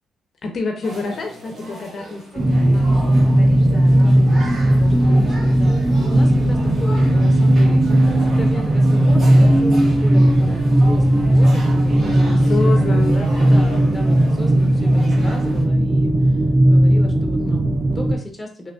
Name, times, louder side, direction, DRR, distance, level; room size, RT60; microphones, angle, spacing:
voice 1, 0.4-5.6 6.3-6.6 12.0-13.9, left 4 dB, 50° left, 3 dB, 0.5 m, -30 dB
sound 1, 0.8-15.6, right 1 dB, 45° right, 1.2 m, -36 dB
sound 2, 2.4-18.1, right 1 dB, 30° right, 0.3 m, -16 dB
voice 2, 4.0-7.8 8.2-12.9 13.4-18.7, left 1 dB, 10° left, 2 dB, 1.0 m, -35 dB
Piano, 5.9-8.2, left 3 dB, 85° right, 0.9 m, -38 dB
3.3 x 2.9 x 2.4 m, 0.44 s
cardioid pair, 90°, 0 cm